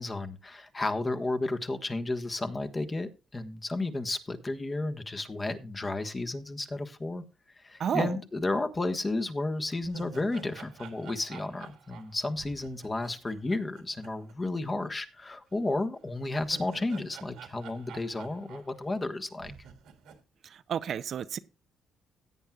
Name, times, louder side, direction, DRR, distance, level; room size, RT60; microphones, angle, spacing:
voice 1, 0.0-7.2 7.6-19.5, left 2 dB, 25° left, 1.3 m, -32 dB
sound 1, 9.0-9.1 9.5-14.6 14.9-15.0 16.1-19.1 19.4-20.2, right 6 dB, 90° right, 1.7 m, -50 dB
voice 2, 20.7-21.4, right 8 dB, 60° right, 0.5 m, -30 dB
16.5 x 8.9 x 2.4 m
cardioid pair, 90°, 0 cm